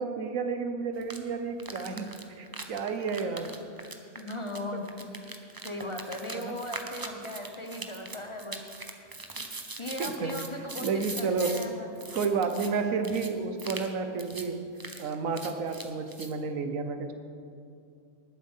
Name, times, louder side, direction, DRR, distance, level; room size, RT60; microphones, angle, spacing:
voice 1, 0.0-3.5 6.3-6.5 10.0-10.4 10.8-11.5 12.1-14.6 15.0-17.1, right 5 dB, 85° right, 7 dB, 1.4 m, -31 dB
sound 1, 1.0-1.2 1.6-11.7 12.0-12.7 13.0-13.3 13.6-13.9 14.2-14.5 14.8-16.3, right 3 dB, 20° right, 0.7 m, -41 dB
voice 2, 4.1-5.1 5.6-9.0 9.8-11.9, left 1 dB, 25° left, 3 dB, 0.9 m, -38 dB
19.5 x 7.5 x 5.5 m, 2.5 s
omnidirectional pair, 1.4 m